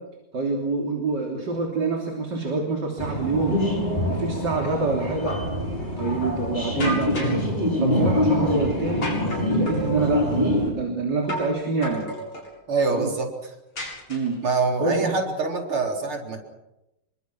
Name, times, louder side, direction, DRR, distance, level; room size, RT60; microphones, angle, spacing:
voice 1, 0.3-3.6 4.1-5.3 6.0-7.4 7.8-9.1 9.5-12.1 12.9-13.1 14.1-14.4 14.8-15.1, right 3 dB, 55° right, 0 dB, 3.9 m, -26 dB
sound 1, 3.0-10.7, left 1 dB, 20° left, 6.0 m, -25 dB
sound 2, 6.8-7.5 9.0-9.9 11.3-11.6 11.8-12.5 13.8-14.5, equal, 70° left, 8.5 m, -32 dB
voice 2, 12.7-13.5 14.4-16.4, right 4 dB, 90° right, 2 dB, 4.8 m, -25 dB
26.5 x 23.5 x 6.1 m, 0.91 s
omnidirectional pair, 2.3 m